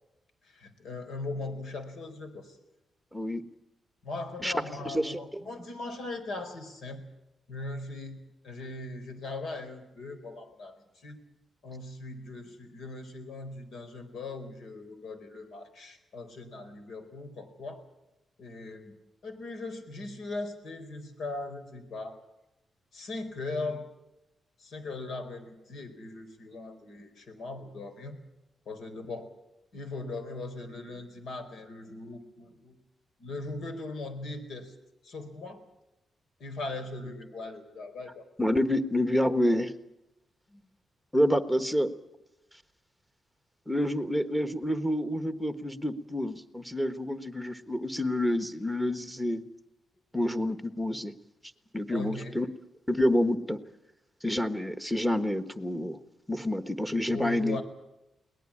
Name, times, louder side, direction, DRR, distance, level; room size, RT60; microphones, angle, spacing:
voice 1, 0.4-2.6 4.0-7.0 7.5-8.2 8.4-11.2 11.6-17.8 18.4-18.9 19.2-22.2 22.9-23.9 24.6-28.2 28.7-29.3 29.7-32.8 33.2-34.7 35.0-35.6 36.4-38.2 40.5-40.6 51.9-52.4 57.1-57.6, left 2 dB, 70° left, 8 dB, 4.3 m, -39 dB
voice 2, 3.1-3.4 4.4-4.5 4.8-5.4 38.4-39.7 41.1-41.9 43.7-49.4 50.1-51.1 51.7-52.5 52.9-53.6 54.2-56.0 56.3-57.6, left 1 dB, 5° left, 9 dB, 1.3 m, -28 dB
22.5 x 19.0 x 8.7 m, 0.93 s
cardioid pair, 120°, 0 cm